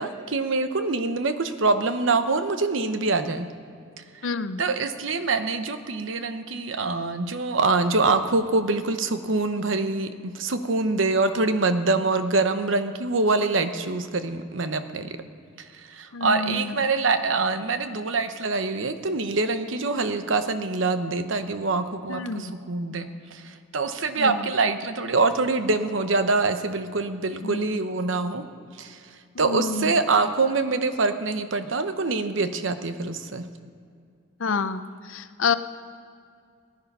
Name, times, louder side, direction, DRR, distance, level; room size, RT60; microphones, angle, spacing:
voice 1, 0.0-3.5 4.2-4.3 4.6-15.2 15.6-28.4 28.8-29.0 29.4-33.4, right 3 dB, 75° right, 9 dB, 0.9 m, -25 dB
voice 2, 4.2-4.6 16.1-16.7 22.1-22.5 24.2-24.4 27.4-27.7 29.4-30.0 34.4-34.8 35.1-35.5, left 4 dB, 85° left, 12 dB, 0.7 m, -28 dB
19.0 x 9.7 x 5.5 m, 2.3 s
head